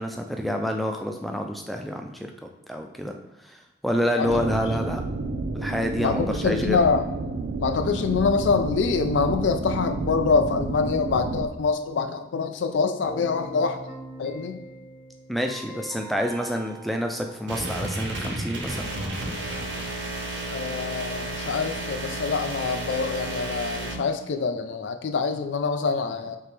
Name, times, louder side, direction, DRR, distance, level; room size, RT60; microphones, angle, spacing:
voice 1, 0.0-2.3 2.7-3.1 3.5-5.0 5.5-6.8 15.3-18.9, equal, ahead, 3 dB, 0.3 m, -28 dB
sound 1, 4.2-11.5, right 3 dB, 65° right, 0.4 m, -30 dB
voice 2, 6.0-7.0 7.6-13.8 14.2-14.6 20.5-26.4, left 5 dB, 85° left, 8 dB, 0.4 m, -25 dB
Keyboard (musical), 13.0-18.0, right 1 dB, 30° left, 1.0 m, -42 dB
sound 2, 17.5-23.9, right 1 dB, 85° right, 1.0 m, -32 dB
4.6 x 2.9 x 3.3 m, 1.0 s
head